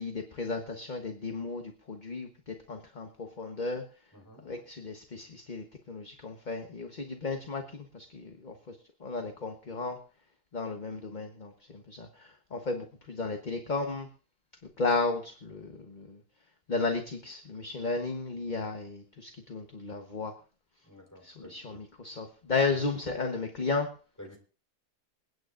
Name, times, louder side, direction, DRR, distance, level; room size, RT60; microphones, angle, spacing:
voice 1, 0.0-3.8 4.4-8.8 9.0-10.0 10.5-14.1 14.8-16.2 16.7-20.3 21.2-23.9, left 3 dB, 30° left, 4 dB, 1.2 m, -34 dB
voice 2, 4.1-4.4 20.9-21.6 22.7-22.9 24.2-24.4, equal, 10° left, 2 dB, 4.3 m, -49 dB
28.0 x 9.4 x 2.5 m, 0.37 s
omnidirectional pair, 1.7 m